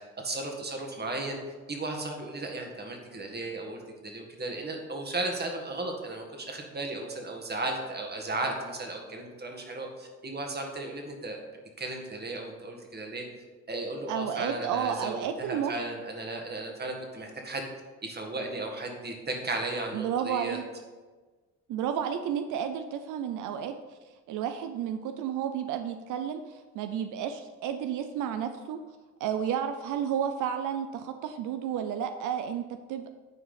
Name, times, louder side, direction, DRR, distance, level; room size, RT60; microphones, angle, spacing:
voice 1, 0.2-1.4 1.7-11.4 11.8-13.2 13.7-17.6 18.0-20.6, right 2 dB, 35° right, 2 dB, 2.0 m, -35 dB
voice 2, 14.1-15.7 19.9-20.6 21.7-23.7 24.3-28.8 29.2-33.1, right 8 dB, 85° right, 8 dB, 0.6 m, -31 dB
9.6 x 4.8 x 5.7 m, 1.3 s
cardioid pair, 90°, 30 cm